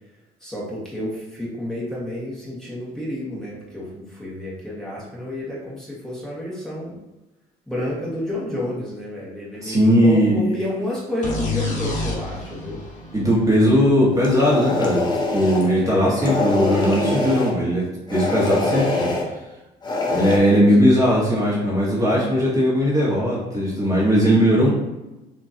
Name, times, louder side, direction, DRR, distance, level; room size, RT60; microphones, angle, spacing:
voice 1, 0.4-7.0 7.7-9.8 10.0-12.8 15.7-16.2, left 1 dB, 5° left, -6 dB, 1.5 m, -30 dB
voice 2, 9.6-10.4 13.1-15.0 15.3-19.1 19.3-19.4 20.1-24.7, equal, 20° right, -6 dB, 1.4 m, -18 dB
sound 1, 11.2-14.9, left 3 dB, 45° left, 1.3 m, -29 dB
sound 2, 14.2-15.7 16.2-17.5 18.1-19.3 19.8-20.4, left 2 dB, 25° left, 0.9 m, -24 dB
6.3 x 2.9 x 2.8 m, 1.0 s
cardioid pair, 110°, 17 cm